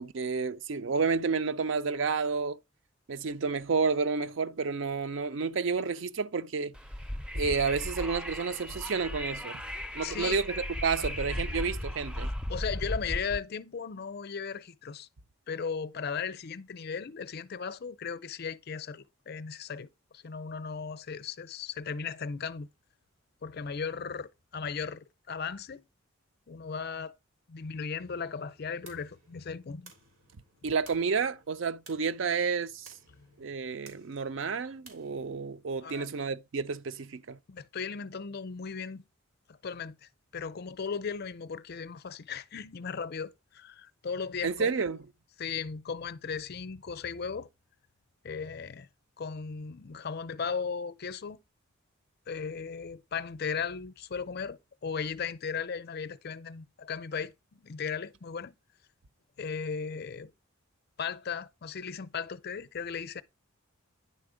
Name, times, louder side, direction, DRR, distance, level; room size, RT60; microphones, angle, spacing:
voice 1, 0.0-2.6 3.1-6.7 7.3-9.6 9.9-12.3 30.6-32.9 33.4-37.4 44.4-45.0, right 5 dB, 60° right, 0.5 m, -30 dB
Wind, 6.7-13.4, left 1 dB, 5° right, 0.4 m, -36 dB
voice 2, 10.0-10.4 12.5-15.1 15.5-19.9 20.1-22.7 23.4-25.8 26.5-27.2 27.5-29.9 33.2-33.3 35.8-36.1 37.5-39.0 39.5-44.7 45.4-47.5 48.2-48.9 49.2-51.4 52.3-58.5 59.4-60.3 61.0-63.2, left 6 dB, 45° left, 0.5 m, -36 dB
sound 1, 28.1-35.5, right 3 dB, 90° right, 3.7 m, -58 dB
10.5 x 4.2 x 5.0 m
head